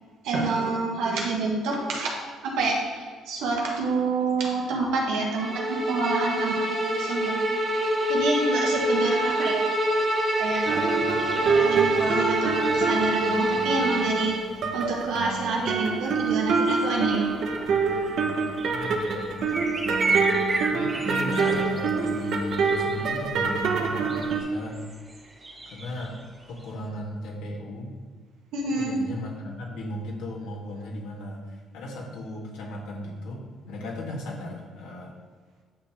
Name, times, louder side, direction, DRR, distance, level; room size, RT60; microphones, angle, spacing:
voice 1, 0.2-2.1 2.4-7.3 8.1-9.6 10.4-10.8 11.3-14.4 14.7-17.3 28.5-29.0, right 3 dB, 85° right, -1 dB, 1.9 m, -28 dB
Bowed string instrument, 5.3-14.5, right 1 dB, 45° right, 1.2 m, -26 dB
sound 1, 9.9-26.9, right 3 dB, 25° right, 1.1 m, -37 dB
sound 2, 10.7-14.3 14.6-24.4, right 4 dB, 65° right, 1.0 m, -26 dB
voice 2, 18.7-19.6 20.7-24.9 25.7-28.0 28.7-35.1, left 1 dB, 85° left, -3 dB, 2.2 m, -36 dB
9.8 x 6.6 x 3.3 m, 1.5 s
cardioid pair, 100°, 0 cm